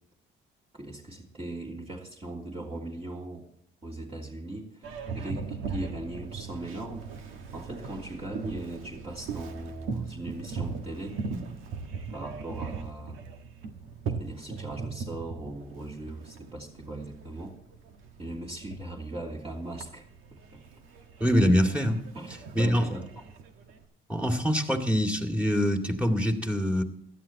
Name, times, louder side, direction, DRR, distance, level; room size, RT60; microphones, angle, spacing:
voice 1, 0.7-3.5 3.8-11.2 12.1-13.2 14.0-17.5 18.2-20.1 20.3-20.6 22.1-23.1, right 2 dB, 30° right, -3 dB, 3.0 m, -39 dB
Boat Water vehicle, 4.8-23.8, right 4 dB, 90° right, 1.6 m, -39 dB
voice 2, 21.2-22.0 22.5-22.9 24.1-26.8, equal, 5° right, 3 dB, 2.3 m, -24 dB
17.5 x 13.0 x 2.9 m, 0.74 s
cardioid pair, 90°, 20 cm